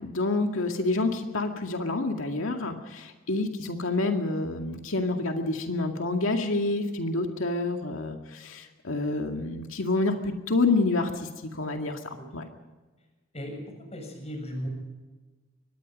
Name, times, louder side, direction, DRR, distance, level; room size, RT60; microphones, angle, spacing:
voice 1, 0.0-12.4, left 2 dB, 80° left, 3 dB, 2.2 m, -28 dB
voice 2, 13.9-14.7, equal, 35° left, 4 dB, 7.0 m, -36 dB
24.0 x 20.0 x 5.4 m, 1.2 s
head